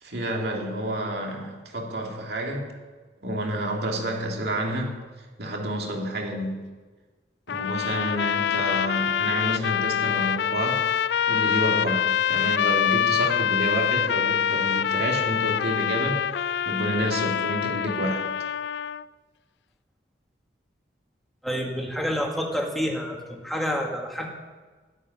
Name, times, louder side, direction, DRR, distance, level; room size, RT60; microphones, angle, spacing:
voice 1, 0.0-2.7 3.2-5.0 5.4-6.6 7.5-10.9 11.3-18.3, right 1 dB, 60° right, 1 dB, 2.5 m, -29 dB
sound 1, 7.5-19.0, left 9 dB, 65° left, 0.3 m, -25 dB
voice 2, 21.4-24.3, equal, ahead, 0 dB, 1.8 m, -28 dB
12.5 x 8.4 x 9.8 m, 1.4 s
head